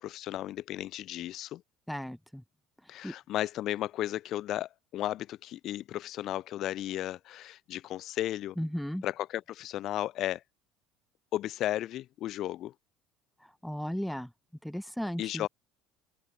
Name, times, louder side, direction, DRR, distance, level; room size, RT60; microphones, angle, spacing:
voice 1, 0.0-1.6 2.9-8.6 9.0-10.4 11.3-12.7 15.2-15.5, left 13 dB, 55° left, 7.9 m, -34 dB
voice 2, 1.9-2.4 2.8-3.1 8.6-9.0 13.4-14.3 14.6-15.5, equal, ahead, 4.8 m, -36 dB
hypercardioid pair, 65°, 0 cm